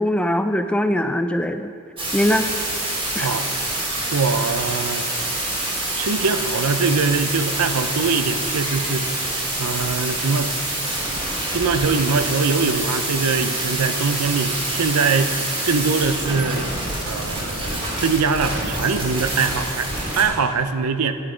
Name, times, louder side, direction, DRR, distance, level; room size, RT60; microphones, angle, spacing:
voice 1, 0.0-1.7 2.1-2.5 3.2-3.3, left 1 dB, 5° left, 8 dB, 0.3 m, -21 dB
sound 1, 2.0-20.2, right 1 dB, 25° right, 2.5 m, -26 dB
voice 2, 3.2-3.5 4.1-5.0 6.0-9.0 9.6-10.5 11.5-16.7 17.1-21.2, right 4 dB, 80° right, 10 dB, 0.6 m, -22 dB
10.0 x 9.8 x 5.0 m, 2.4 s
head